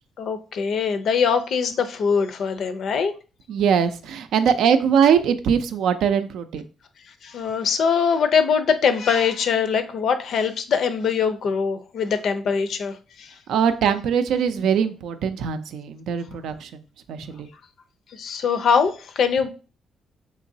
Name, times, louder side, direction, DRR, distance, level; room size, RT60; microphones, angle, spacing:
voice 1, 0.2-3.1 7.2-13.3 18.2-19.5, left 6 dB, 65° left, 0.5 m, -22 dB
voice 2, 3.5-6.6 13.5-16.8 17.1-17.5, right 7 dB, 80° right, 0.4 m, -21 dB
3.7 x 2.9 x 2.6 m
cardioid pair, 90°, 0 cm